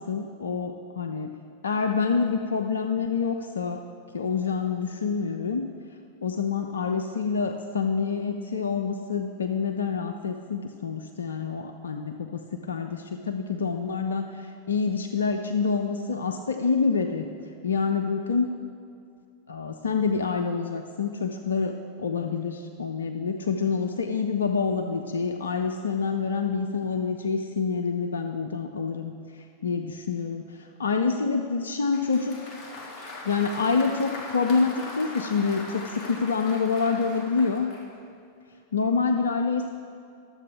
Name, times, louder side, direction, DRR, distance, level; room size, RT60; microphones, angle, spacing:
voice 1, 0.0-1.4 1.6-3.8 4.1-5.7 6.2-17.2 17.6-18.5 19.5-32.5 33.2-37.7 38.7-39.7, left 5 dB, 70° left, 5 dB, 0.4 m, -27 dB
Applause, 31.9-37.9, left 2 dB, 35° left, 1.2 m, -40 dB
12.0 x 7.5 x 3.5 m, 2.4 s
figure-of-eight pair, 90°, 0 cm